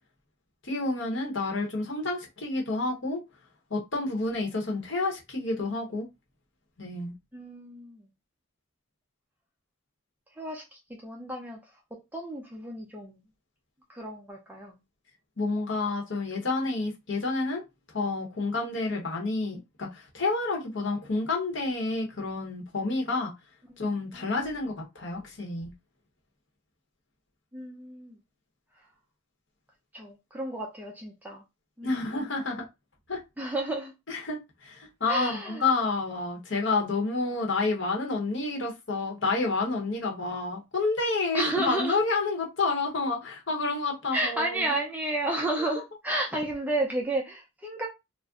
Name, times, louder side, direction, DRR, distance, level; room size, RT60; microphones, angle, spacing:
voice 1, 0.7-3.2 3.7-6.1 6.8-7.1 15.4-17.6 17.9-23.3 23.8-25.7 31.8-32.7 33.1-33.2 34.1-44.6, left 3 dB, 60° left, 1.0 m, -29 dB
voice 2, 7.3-8.1 10.4-11.6 11.9-13.2 13.9-14.8 24.1-24.4 27.5-28.2 29.9-31.4 31.8-32.3 33.4-33.9 35.1-35.7 41.3-42.0 44.1-47.9, right 1 dB, 10° right, 0.5 m, -32 dB
2.5 x 2.1 x 3.6 m
head